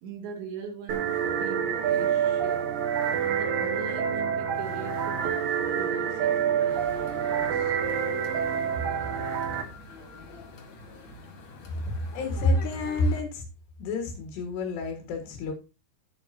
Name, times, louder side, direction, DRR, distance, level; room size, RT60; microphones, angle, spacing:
voice 1, 0.0-2.7 3.2-7.8 8.3-8.5 9.0-9.4, right 5 dB, 85° right, 4.7 m, -41 dB
sound 1, 0.9-9.6, right 8 dB, 60° right, 3.1 m, -27 dB
sound 2, 6.7-13.2, left 4 dB, 50° left, 2.7 m, -46 dB
voice 2, 11.8-13.4 13.8-15.5, left 2 dB, 75° left, 3.9 m, -28 dB
10.5 x 10.5 x 2.8 m
omnidirectional pair, 5.0 m